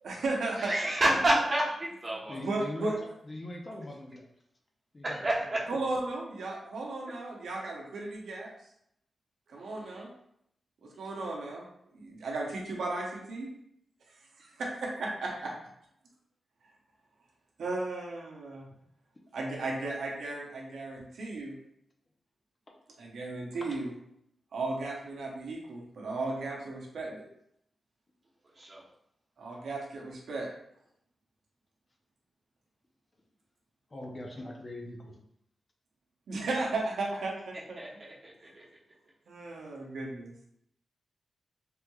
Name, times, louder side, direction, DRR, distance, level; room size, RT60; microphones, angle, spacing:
voice 1, 0.0-0.7 2.4-3.0 5.7-8.5 9.5-10.1 10.8-13.5 14.4-15.5 17.6-18.7 19.3-21.6 23.0-23.9 24.5-27.3 29.4-30.5 36.3-37.8 39.3-40.3, right 2 dB, 90° right, -2 dB, 0.7 m, -35 dB
voice 2, 0.6-2.4 5.0-5.6 9.6-10.0 28.6-28.8 37.8-38.6, right 1 dB, 35° right, -6 dB, 0.9 m, -29 dB
voice 3, 2.3-2.9 3.3-4.3 4.9-5.9 23.5-23.8 33.9-35.2, left 1 dB, 30° left, 1 dB, 0.5 m, -42 dB
3.4 x 3.0 x 2.3 m, 0.74 s
wide cardioid pair, 125°, 0 cm